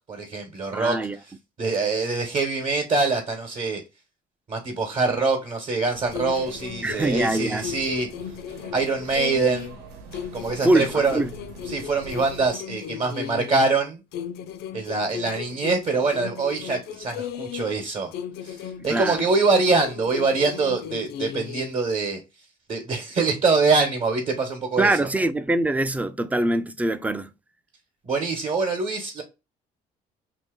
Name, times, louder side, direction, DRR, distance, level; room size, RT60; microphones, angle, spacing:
voice 1, 0.1-1.0 1.6-3.8 4.5-8.1 8.7-9.7 10.3-11.2 11.7-14.0 14.7-18.1 18.4-22.2 22.7-25.1 28.0-29.2, right 3 dB, 45° right, 1.0 m, -24 dB
voice 2, 0.7-1.2 6.8-7.7 10.6-11.3 18.9-19.2 24.8-27.3, right 1 dB, 10° right, 0.3 m, -23 dB
sound 1, 5.9-12.5, right 3 dB, 75° right, 1.1 m, -44 dB
sound 2, 6.1-9.8 10.1-13.7 14.1-17.8 18.1-21.7, left 9 dB, 75° left, 0.4 m, -36 dB
2.8 x 2.7 x 3.6 m
cardioid pair, 110°, 17 cm